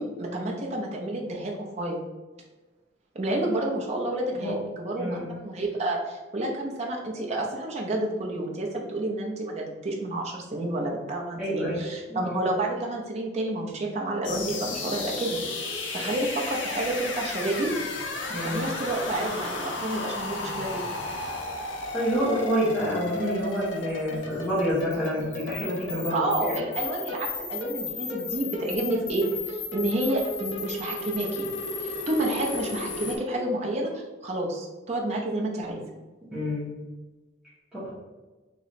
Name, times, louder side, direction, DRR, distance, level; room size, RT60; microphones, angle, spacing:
voice 1, 0.0-2.0 3.1-15.4 15.9-17.7 18.4-20.8 26.1-31.5 31.8-35.8, right 1 dB, 35° right, -2 dB, 0.6 m, -30 dB
voice 2, 5.0-5.3 11.4-11.8 12.1-12.3 18.3-18.7 21.9-26.6 36.3-36.8 37.7-37.9, equal, 5° right, -13 dB, 1.1 m, -28 dB
sound 1, 14.2-33.2, left 3 dB, 75° left, 0.7 m, -34 dB
3.1 x 2.9 x 4.0 m, 1.2 s
head